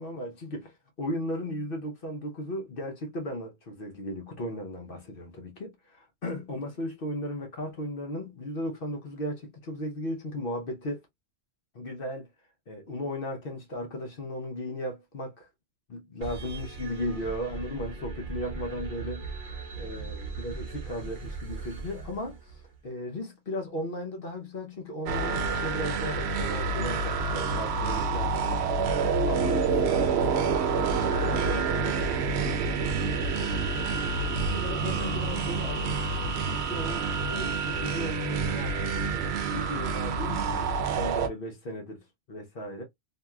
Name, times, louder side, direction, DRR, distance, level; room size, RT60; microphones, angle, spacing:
voice 1, 0.0-5.7 6.2-11.0 11.7-12.3 12.7-15.5 15.9-32.6 33.3-33.5 34.5-38.8 39.1-42.8, left 1 dB, 65° left, 1.0 m, -36 dB
sound 1, 16.2-22.8, right 4 dB, 55° right, 0.9 m, -39 dB
sound 2, 25.1-41.3, right 4 dB, 90° right, 0.8 m, -28 dB
2.8 x 2.7 x 2.3 m
omnidirectional pair, 1.0 m